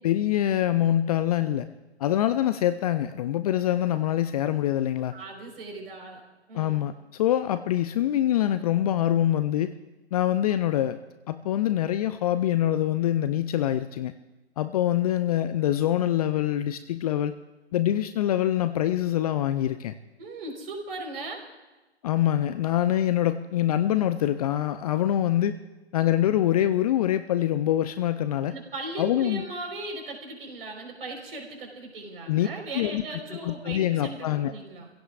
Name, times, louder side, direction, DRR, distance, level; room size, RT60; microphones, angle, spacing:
voice 1, 0.0-1.7 2.0-5.2 6.5-9.7 10.1-11.0 11.3-14.1 14.6-17.3 17.7-20.0 22.0-25.6 25.9-28.5 29.0-29.4 32.3-32.5 32.7-33.0 33.4-34.5, left 12 dB, 35° left, 11 dB, 0.6 m, -25 dB
voice 2, 5.1-6.2 6.5-6.8 20.2-21.4 28.5-34.9, right 2 dB, 60° right, 2 dB, 4.5 m, -38 dB
29.5 x 16.5 x 2.5 m, 1.1 s
figure-of-eight pair, 120°, 32 cm